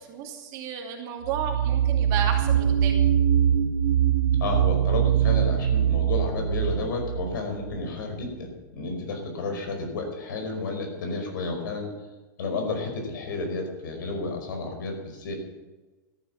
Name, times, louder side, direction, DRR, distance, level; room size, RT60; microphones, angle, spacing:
voice 1, 0.1-3.0, right 8 dB, 35° right, 1 dB, 2.7 m, -32 dB
sound 1, 1.2-7.9, right 9 dB, 80° right, 0.9 m, -23 dB
voice 2, 4.4-11.9 12.4-15.3, left 3 dB, 85° left, 3 dB, 5.3 m, -31 dB
14.0 x 10.5 x 7.1 m, 1.2 s
supercardioid pair, 170°, 10 cm